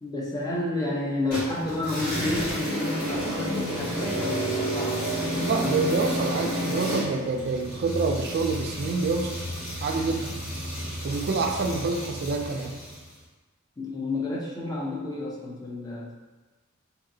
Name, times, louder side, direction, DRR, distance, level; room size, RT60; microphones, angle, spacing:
voice 1, 0.0-5.0 13.8-16.2, left 2 dB, 20° left, -4 dB, 0.5 m, -30 dB
sound 1, 1.3-13.1, equal, 50° left, 1.3 m, -31 dB
voice 2, 5.2-9.3 9.8-10.4 11.0-12.7, right 4 dB, 50° right, 3 dB, 0.3 m, -27 dB
2.8 x 2.7 x 2.6 m, 1.2 s
head